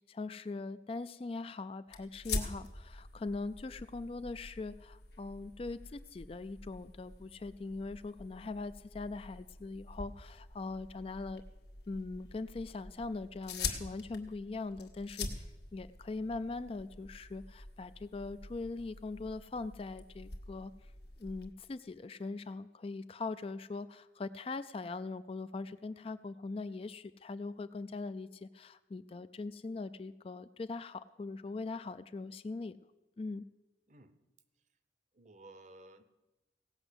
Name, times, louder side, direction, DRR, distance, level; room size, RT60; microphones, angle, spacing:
voice 1, 0.1-11.4 11.9-20.7 21.2-32.8 33.2-33.5, left 3 dB, 30° left, 13 dB, 0.3 m, -41 dB
sound 1, 1.9-21.5, left 4 dB, 70° left, 1.4 m, -45 dB
voice 2, 35.1-36.0, right 2 dB, 40° right, 12 dB, 0.7 m, -55 dB
17.0 x 5.9 x 8.0 m, 1.1 s
head